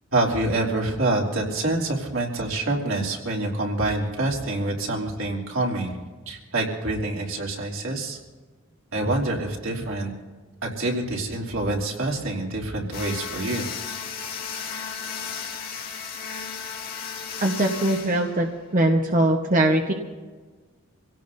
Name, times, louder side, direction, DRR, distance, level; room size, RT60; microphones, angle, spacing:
voice 1, 0.1-5.9 6.3-8.2 8.9-10.1 10.6-13.7, right 2 dB, 85° right, -2 dB, 3.2 m, -26 dB
sound 1, 12.9-18.9, left 6 dB, 50° left, 2.3 m, -35 dB
voice 2, 17.4-19.9, right 1 dB, 45° right, 2 dB, 1.2 m, -21 dB
27.0 x 17.0 x 2.7 m, 1.3 s
head